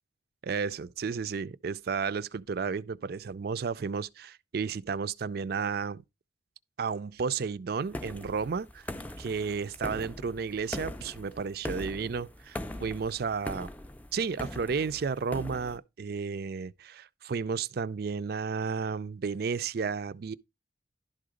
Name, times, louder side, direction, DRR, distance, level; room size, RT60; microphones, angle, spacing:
voice 1, 0.4-6.0 6.8-8.9 9.2-13.7 14.1-20.3, right 5 dB, 60° right, 0.4 m, -32 dB
sound 1, 7.9-15.8, left 1 dB, 10° left, 0.5 m, -41 dB
11.5 x 3.9 x 4.9 m
head